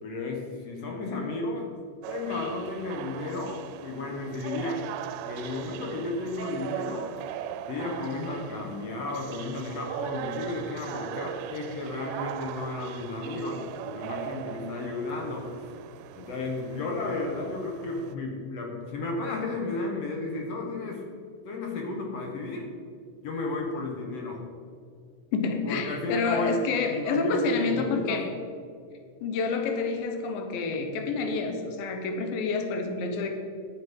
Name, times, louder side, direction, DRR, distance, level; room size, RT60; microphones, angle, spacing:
voice 1, 0.0-1.7 2.1-4.9 5.3-7.1 7.7-15.5 16.1-21.0 21.4-22.7 23.2-24.4 25.7-28.2, left 2 dB, 60° left, 1 dB, 1.9 m, -33 dB
sound 1, 2.0-18.1, right 11 dB, 80° right, 2.0 m, -39 dB
voice 2, 25.3-28.3 29.2-33.3, left 4 dB, 90° left, 5 dB, 2.8 m, -28 dB
11.5 x 7.8 x 5.4 m, 2.2 s
omnidirectional pair, 4.0 m